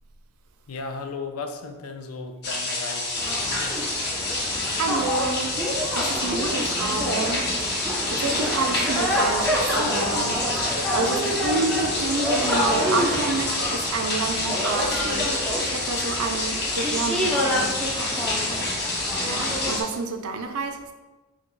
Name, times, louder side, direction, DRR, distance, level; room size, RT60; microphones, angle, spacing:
voice 1, 0.7-3.8 4.7-4.8, left 4 dB, 80° left, 6 dB, 0.5 m, -36 dB
sound 1, 2.4-19.8, left 2 dB, 50° left, 0.9 m, -28 dB
sound 2, 3.2-19.8, equal, 5° left, 0.5 m, -28 dB
voice 2, 4.4-15.3 15.6-18.2 19.3-20.9, right 3 dB, 80° right, 6 dB, 0.5 m, -29 dB
4.5 x 2.3 x 3.8 m, 1.2 s
head